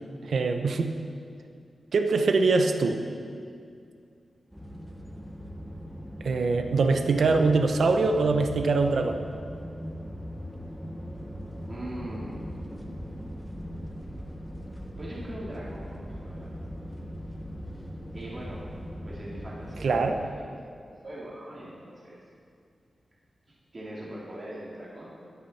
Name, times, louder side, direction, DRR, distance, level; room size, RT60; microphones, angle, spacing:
voice 1, 0.2-0.9 1.9-3.0 6.2-9.2 19.8-20.2, right 3 dB, 75° right, 5 dB, 0.9 m, -23 dB
sound 1, 4.5-20.3, equal, 5° right, 1.4 m, -40 dB
voice 2, 11.6-12.6 15.0-16.7 18.1-18.6 19.0-20.5 20.8-22.2 23.7-25.1, right 1 dB, 40° right, -6 dB, 2.8 m, -41 dB
21.0 x 9.8 x 4.3 m, 2.3 s
wide cardioid pair, 140°, 0 cm